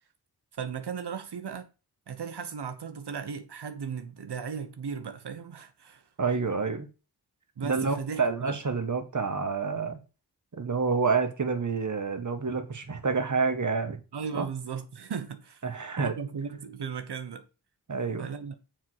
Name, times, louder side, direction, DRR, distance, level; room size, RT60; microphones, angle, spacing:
voice 1, 0.5-1.7 2.1-6.1 7.6-8.6 14.1-15.7 16.0-17.5 18.2-18.6, right 6 dB, 70° right, 1.0 m, -36 dB
voice 2, 6.2-6.9 7.6-10.0 10.5-14.0 14.3-14.5 15.6-16.1 17.9-18.3, right 4 dB, 45° right, 1.6 m, -28 dB
7.3 x 4.6 x 6.3 m
wide cardioid pair, 85°, 41 cm